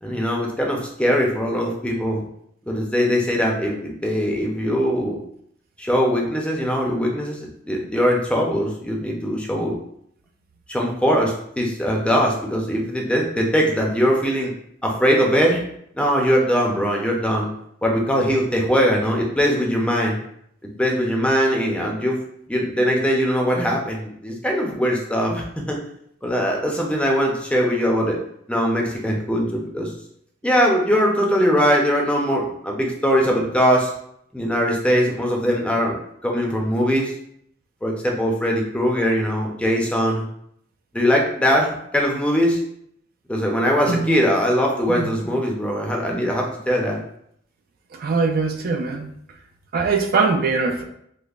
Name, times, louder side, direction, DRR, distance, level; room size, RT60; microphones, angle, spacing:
voice 1, 0.0-2.2 2.7-5.2 5.8-9.8 10.7-14.5 14.8-15.6 15.9-17.5 17.8-20.2 20.8-22.2 22.5-25.8 26.2-28.2 28.5-29.9 30.4-33.9 34.3-36.0 36.2-37.1 37.8-40.2 40.9-42.6 43.3-47.0, equal, 5° left, -1 dB, 0.5 m, -21 dB
voice 2, 43.9-44.2 44.9-45.1 47.9-49.1 49.7-50.8, right 4 dB, 50° right, 3 dB, 0.4 m, -22 dB
5.2 x 2.0 x 2.4 m, 0.70 s
head